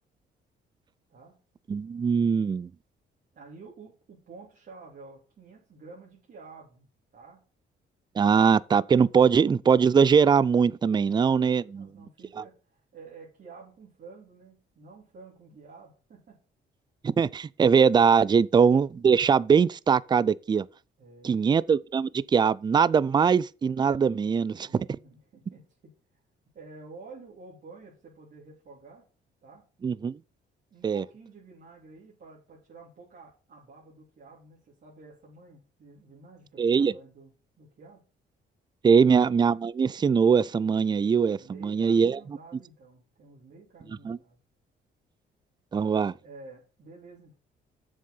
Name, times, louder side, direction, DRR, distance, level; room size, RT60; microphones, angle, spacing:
voice 1, 1.7-2.7 8.2-11.9 17.0-20.7 21.2-24.9 29.8-30.2 30.8-31.0 36.6-36.9 38.8-42.2 44.0-44.2 45.7-46.1, right 6 dB, 20° right, 0.3 m, -22 dB
voice 2, 3.3-7.4 10.9-16.4 21.0-21.5 24.6-26.2 26.5-29.0 29.4-29.6 30.7-38.0 41.4-44.4 46.2-47.3, right 4 dB, 55° right, 3.1 m, -50 dB
7.3 x 6.6 x 5.5 m
cardioid pair, 90°, 20 cm